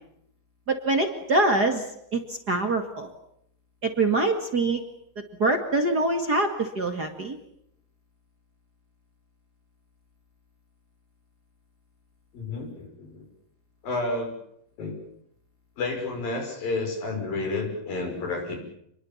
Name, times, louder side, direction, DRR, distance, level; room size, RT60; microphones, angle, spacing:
voice 1, 0.7-1.8 2.1-3.1 3.8-4.8 5.4-7.4, right 2 dB, 35° right, 5 dB, 2.1 m, -24 dB
voice 2, 12.3-13.3 13.8-14.3 14.8-14.9 15.8-18.6, left 3 dB, 80° left, 3 dB, 8.0 m, -30 dB
28.5 x 22.0 x 7.3 m, 0.74 s
omnidirectional pair, 4.0 m